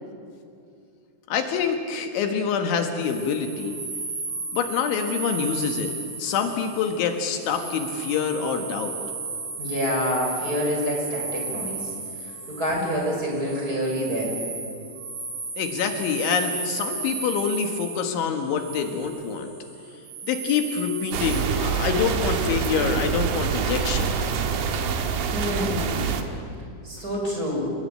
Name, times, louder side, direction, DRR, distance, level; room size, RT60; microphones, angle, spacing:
voice 1, 1.3-3.8 4.5-5.9 6.2-8.9 15.6-19.5 20.3-24.2, left 6 dB, 75° left, 5 dB, 3.9 m, -26 dB
sound 1, 2.9-21.4, right 4 dB, 85° right, 5.8 m, -34 dB
voice 2, 9.6-11.9 12.2-14.4 25.3-26.1 26.8-27.7, equal, 20° right, -1 dB, 6.3 m, -27 dB
sound 2, 21.1-26.2, right 6 dB, 65° right, 3.3 m, -26 dB
29.0 x 20.0 x 8.8 m, 2.5 s
omnidirectional pair, 5.5 m